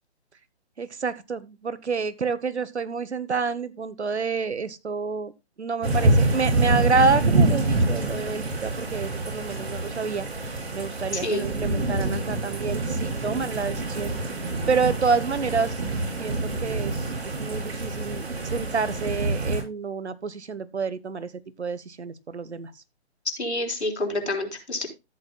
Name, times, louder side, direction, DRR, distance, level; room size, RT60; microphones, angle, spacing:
voice 1, 0.8-5.3 5.6-10.3 10.7-14.1 14.7-15.7 16.2-17.0 17.4-21.3 21.6-22.7, right 4 dB, 85° right, 1.1 m, -28 dB
sound 1, 5.8-19.6, right 2 dB, 70° right, 5.9 m, -26 dB
voice 2, 11.1-11.4 23.4-24.9, left 1 dB, 90° left, 3.8 m, -28 dB
14.0 x 8.7 x 2.3 m
figure-of-eight pair, 140°, 33 cm